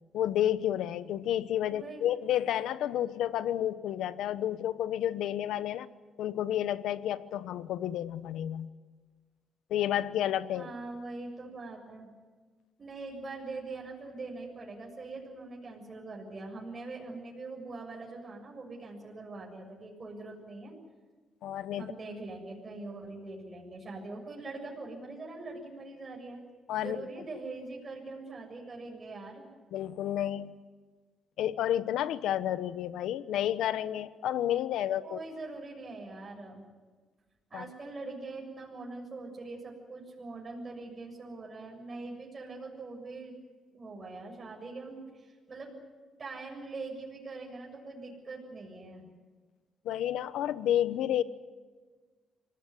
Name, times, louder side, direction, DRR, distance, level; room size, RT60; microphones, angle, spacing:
voice 1, 0.1-5.9 6.2-8.7 9.7-10.7 21.4-21.9 26.7-27.1 29.7-30.6 31.4-35.2 37.5-37.6 49.8-51.2, left 11 dB, 80° left, 15 dB, 1.0 m, -30 dB
voice 2, 1.6-2.0 10.5-12.1 12.8-20.7 21.8-26.4 26.8-29.4 35.0-36.7 37.5-43.3 43.7-45.8 46.2-49.1, right 3 dB, 35° right, 0 dB, 7.2 m, -43 dB
26.0 x 18.5 x 9.8 m, 1.4 s
cardioid pair, 90°, 0 cm